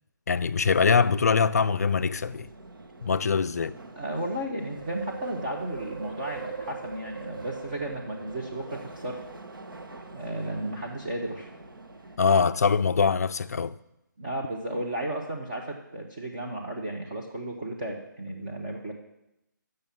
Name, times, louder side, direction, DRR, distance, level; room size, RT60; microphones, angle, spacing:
voice 1, 0.3-2.5 3.0-3.8 12.2-13.7, left 5 dB, 50° left, 0.4 m, -23 dB
sound 1, 1.0-12.2, right 4 dB, 85° right, 1.1 m, -42 dB
voice 2, 4.0-9.2 10.1-11.5 14.2-18.9, right 1 dB, 25° right, 0.8 m, -34 dB
8.8 x 6.6 x 7.1 m
hypercardioid pair, 175°, 11 cm